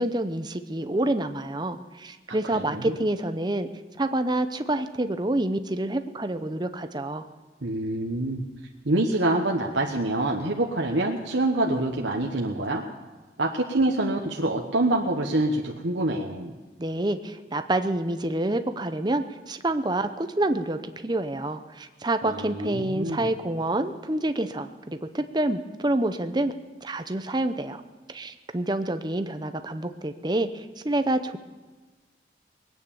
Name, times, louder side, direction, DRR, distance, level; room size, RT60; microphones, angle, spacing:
voice 1, 0.0-3.7 4.0-7.3 16.8-26.5 26.8-27.8 28.1-31.4, right 1 dB, 25° right, 9 dB, 0.7 m, -27 dB
voice 2, 2.3-2.9 7.6-8.4 8.8-12.8 13.4-16.5 22.2-23.3, right 2 dB, 80° right, 0 dB, 1.2 m, -26 dB
21.0 x 9.4 x 7.1 m, 1.3 s
head